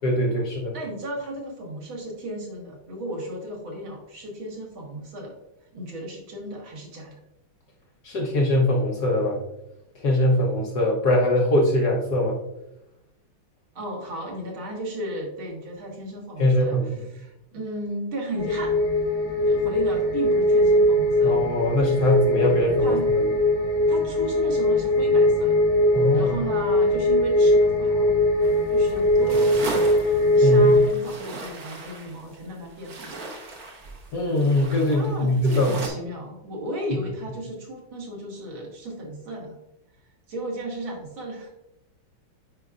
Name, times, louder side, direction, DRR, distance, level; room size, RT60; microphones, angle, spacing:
voice 1, 0.0-0.7 8.0-9.4 10.0-12.4 16.4-16.9 21.2-23.3 25.9-26.3 30.4-30.7 34.1-35.8, left 1 dB, 55° left, -1 dB, 1.3 m, -22 dB
voice 2, 0.7-5.3 5.7-7.2 13.8-16.8 17.1-18.8 19.4-21.3 21.9-22.1 22.8-23.1 23.9-25.6 26.1-28.2 28.7-33.3 34.9-39.6 40.3-41.6, right 1 dB, 70° right, -2 dB, 2.4 m, -34 dB
sound 1, 18.4-30.9, left 1 dB, 35° right, 2.3 m, -20 dB
sound 2, 28.4-35.9, right 2 dB, 50° right, 1.3 m, -37 dB
9.3 x 4.9 x 2.4 m, 0.88 s
omnidirectional pair, 2.4 m